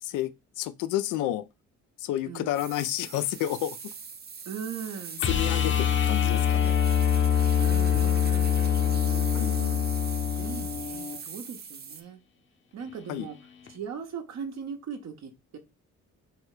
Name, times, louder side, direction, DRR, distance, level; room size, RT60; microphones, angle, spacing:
voice 1, 0.6-1.4 2.0-3.8 5.3-6.8 9.3-9.6 13.1-13.3, left 13 dB, 85° left, 0.5 m, -30 dB
voice 2, 2.2-2.6 4.5-5.3 7.6-9.9 10.4-12.2 12.7-13.4 13.7-15.6, right 7 dB, 60° right, 0.9 m, -39 dB
sound 1, 2.5-12.0, right 6 dB, 35° right, 0.7 m, -41 dB
sound 2, 5.2-11.2 13.7-13.8, left 9 dB, 40° left, 0.8 m, -24 dB
4.7 x 2.2 x 4.8 m
cardioid pair, 90°, 30 cm